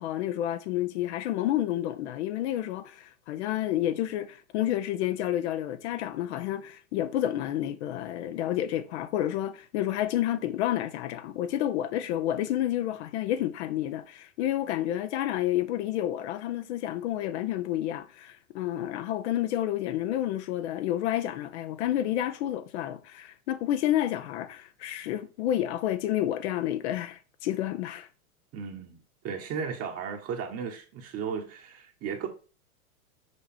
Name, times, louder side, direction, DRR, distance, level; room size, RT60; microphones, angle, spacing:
voice 1, 0.0-28.1, left 12 dB, 50° left, 0.8 m, -30 dB
voice 2, 28.5-29.0 29.2-32.3, right 6 dB, 35° right, 1.3 m, -35 dB
6.5 x 4.8 x 4.3 m
hypercardioid pair, 110°, 43 cm